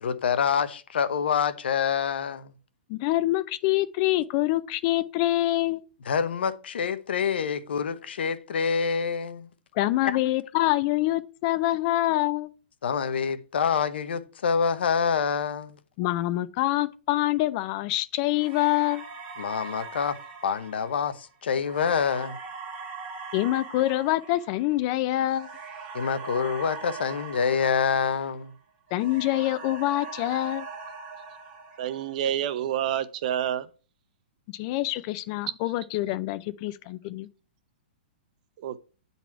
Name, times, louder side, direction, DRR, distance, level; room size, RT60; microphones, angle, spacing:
voice 1, 0.0-2.5 6.1-9.5 10.0-10.3 12.8-15.7 19.4-22.4 25.9-28.5, left 6 dB, 80° left, 0.9 m, -26 dB
voice 2, 2.9-5.8 9.7-12.5 16.0-19.0 23.3-25.5 28.9-30.7 34.5-37.3, left 16 dB, 35° left, 0.4 m, -25 dB
sound 1, 18.4-28.6 28.9-32.3, right 5 dB, 25° right, 1.8 m, -41 dB
voice 3, 31.8-33.7 38.6-38.8, right 10 dB, 45° right, 0.7 m, -28 dB
8.9 x 4.1 x 4.6 m
hypercardioid pair, 160°, 6 cm